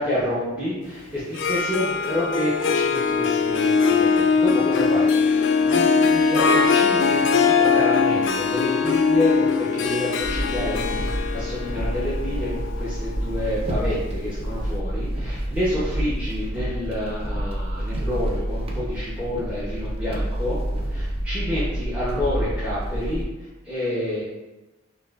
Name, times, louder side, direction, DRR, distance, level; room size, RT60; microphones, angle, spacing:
voice 1, 0.0-20.6 20.9-23.2 23.6-24.2, left 1 dB, 10° right, -10 dB, 0.8 m, -29 dB
Harp, 1.2-14.1, left 5 dB, 65° left, 0.3 m, -21 dB
sound 1, 10.2-23.2, right 1 dB, 30° right, 0.5 m, -28 dB
6.0 x 2.5 x 2.5 m, 1.1 s
head